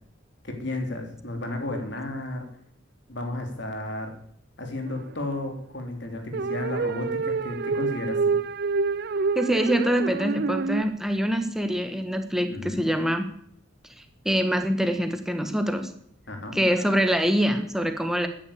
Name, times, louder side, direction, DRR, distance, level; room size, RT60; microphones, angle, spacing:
voice 1, 0.4-2.5 3.1-4.1 4.6-8.4 12.5-12.9 16.3-16.6, left 2 dB, 60° left, 4 dB, 3.3 m, -33 dB
sound 1, 4.9-5.2 6.3-10.8, right 4 dB, 55° right, 0.5 m, -27 dB
voice 2, 9.3-13.2 14.2-15.9 16.5-18.3, equal, ahead, 7 dB, 1.4 m, -24 dB
14.0 x 10.0 x 8.6 m, 0.67 s
head